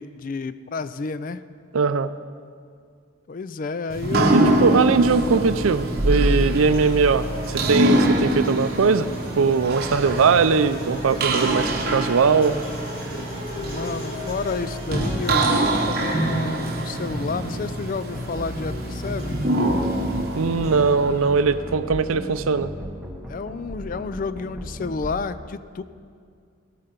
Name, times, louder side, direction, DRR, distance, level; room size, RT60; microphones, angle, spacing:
voice 1, 0.0-1.4 3.3-4.4 13.6-19.4 23.3-25.8, left 4 dB, 40° left, 14 dB, 0.3 m, -30 dB
voice 2, 1.7-2.1 4.3-9.1 9.4-12.6 20.4-22.7, right 5 dB, 80° right, 13 dB, 0.5 m, -20 dB
sound 1, 3.9-21.7, right 1 dB, 45° right, 0.9 m, -25 dB
sound 2, 6.5-20.9, right 1 dB, 70° left, 3.5 m, -35 dB
sound 3, 18.1-25.1, equal, ahead, 1.2 m, -35 dB
16.5 x 5.7 x 6.6 m, 2.2 s
head